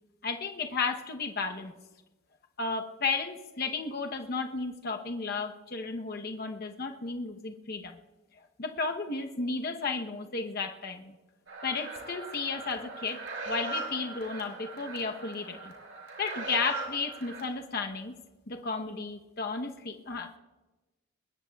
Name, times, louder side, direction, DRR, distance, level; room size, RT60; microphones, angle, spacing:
voice 1, 0.2-1.7 2.6-8.0 8.6-11.2 11.6-15.7 16.2-18.1 18.5-20.4, left 4 dB, 45° left, 4 dB, 0.9 m, -33 dB
sound 1, 11.5-17.4, right 3 dB, 65° right, 4.9 m, -40 dB
21.5 x 20.0 x 2.3 m, 1.2 s
head